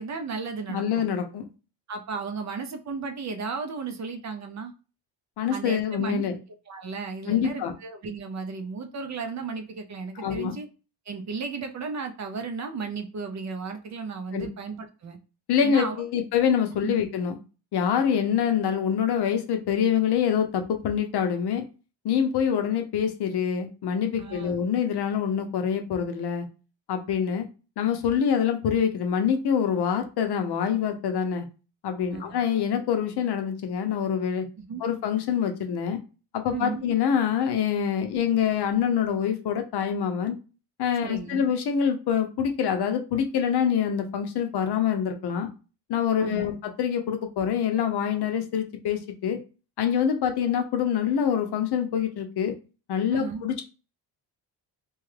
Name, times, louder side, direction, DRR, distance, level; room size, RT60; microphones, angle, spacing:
voice 1, 0.0-1.1 1.9-4.7 5.5-6.3 6.7-10.7 11.1-15.2 15.6-16.0 16.8-16.9 24.2-24.5 32.1-32.3 34.7-34.8 36.5-36.9 41.0-41.5 46.2-46.5 53.1-53.4, right 5 dB, 40° right, 6 dB, 0.4 m, -34 dB
voice 2, 0.7-1.5 5.4-6.4 7.3-7.7 10.2-10.5 14.3-14.5 15.5-17.4 17.7-21.6 22.0-26.5 26.9-27.5 27.8-31.4 31.8-34.5 34.8-36.0 36.3-40.4 40.8-45.5 45.9-49.4 49.8-52.6 52.9-53.6, left 8 dB, 60° left, 6 dB, 0.7 m, -25 dB
2.8 x 2.3 x 3.2 m, 0.33 s
cardioid pair, 130°, 44 cm